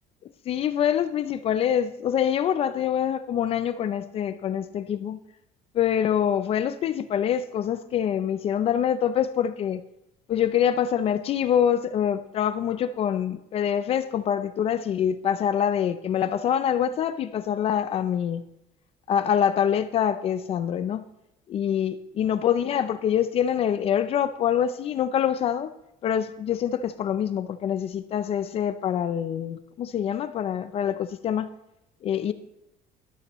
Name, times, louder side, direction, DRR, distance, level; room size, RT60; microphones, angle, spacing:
voice 1, 0.5-5.2 5.7-9.8 10.3-18.4 19.1-21.0 21.5-25.7 26.0-31.5 32.0-32.3, left 9 dB, 40° left, 0.5 m, -25 dB
12.0 x 11.5 x 3.0 m
cardioid pair, 160°, 16 cm